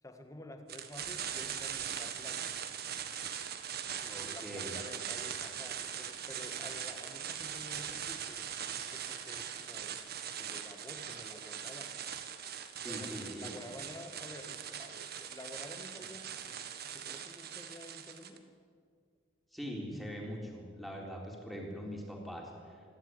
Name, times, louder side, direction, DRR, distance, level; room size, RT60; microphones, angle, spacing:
voice 1, 0.0-2.6 3.9-8.5 8.9-10.0 10.4-12.0 12.9-18.5, left 1 dB, 15° left, 6 dB, 1.7 m, -51 dB
sound 1, 0.7-18.4, right 8 dB, 50° right, 1.5 m, -41 dB
voice 2, 4.1-4.8 12.8-13.5 19.5-22.8, equal, ahead, -1 dB, 3.7 m, -42 dB
27.5 x 11.5 x 9.7 m, 2.1 s
head